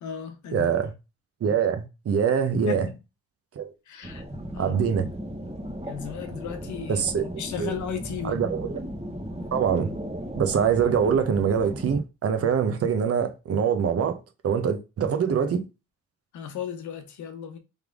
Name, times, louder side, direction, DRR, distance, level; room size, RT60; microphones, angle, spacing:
voice 1, 0.0-0.7 2.7-2.9 3.9-4.2 4.5-4.7 5.9-7.0 7.4-8.4 16.3-17.6, left 7 dB, 75° left, 1.0 m, -35 dB
voice 2, 0.5-0.9 1.4-2.9 3.5-3.7 4.6-5.1 6.9-7.2 7.6-7.8 8.2-8.8 9.5-9.9 10.3-15.6, right 7 dB, 50° right, 0.9 m, -24 dB
sound 1, 4.0-12.0, equal, 20° right, 1.3 m, -36 dB
3.6 x 3.3 x 3.6 m
cardioid pair, 90°, 30 cm